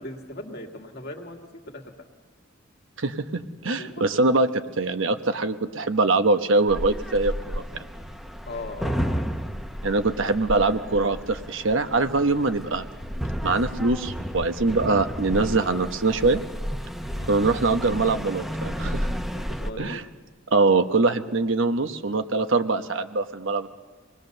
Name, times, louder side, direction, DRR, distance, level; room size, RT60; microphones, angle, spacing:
voice 1, 0.0-1.4 1.7-1.9 3.8-4.0 8.5-9.2 17.1-17.3 19.3-20.0, left 2 dB, 55° left, 2 dB, 2.2 m, -38 dB
voice 2, 3.0-4.5 4.8-7.9 9.8-12.9 13.4-16.4 17.3-19.2 19.8-20.0 20.5-23.7, right 3 dB, 85° right, 8 dB, 1.1 m, -23 dB
sound 1, 6.7-19.7, equal, ahead, 1.0 m, -32 dB
24.5 x 20.0 x 6.7 m, 1.4 s
head